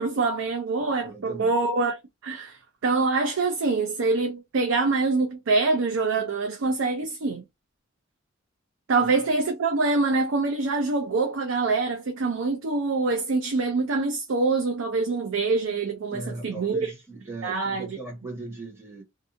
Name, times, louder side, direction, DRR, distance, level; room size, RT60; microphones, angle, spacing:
voice 1, 0.0-2.0 2.2-7.4 8.9-16.9 17.4-18.0, right 3 dB, 85° right, 0.5 m, -25 dB
voice 2, 1.0-1.6 9.0-9.1 16.1-19.0, right 2 dB, 15° right, 1.3 m, -38 dB
2.6 x 2.4 x 2.6 m
head